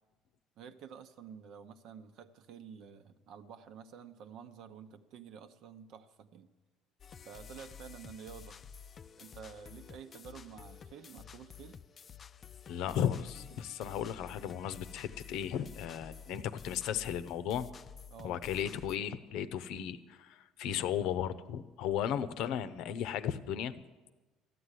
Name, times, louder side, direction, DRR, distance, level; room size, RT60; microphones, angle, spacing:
voice 1, 0.6-6.5 7.2-8.6 9.2-11.8 18.1-18.4, right 7 dB, 65° right, 10 dB, 0.9 m, -50 dB
sound 1, 7.0-19.0, left 7 dB, 35° left, 0.4 m, -51 dB
voice 2, 12.7-17.7 18.2-23.8, left 9 dB, 70° left, 13 dB, 0.7 m, -35 dB
14.0 x 7.7 x 9.9 m, 1.2 s
cardioid pair, 115°, 0 cm